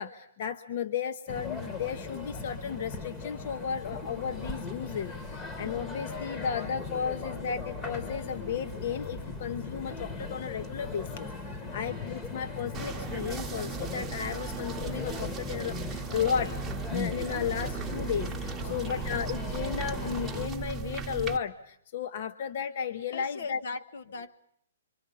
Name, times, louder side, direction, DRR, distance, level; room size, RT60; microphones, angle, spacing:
voice 1, 0.0-11.3 11.7-16.5 16.9-23.6, left 7 dB, 50° left, 9 dB, 0.9 m, -34 dB
sound 1, 1.3-20.5, left 3 dB, 15° left, 1.2 m, -38 dB
sound 2, 12.7-21.4, right 6 dB, 10° right, 1.0 m, -37 dB
voice 2, 16.1-16.6 18.6-19.1 23.1-24.4, left 4 dB, 65° left, 11 dB, 1.2 m, -41 dB
26.5 x 24.5 x 5.5 m, 0.68 s
hypercardioid pair, 150°, 0 cm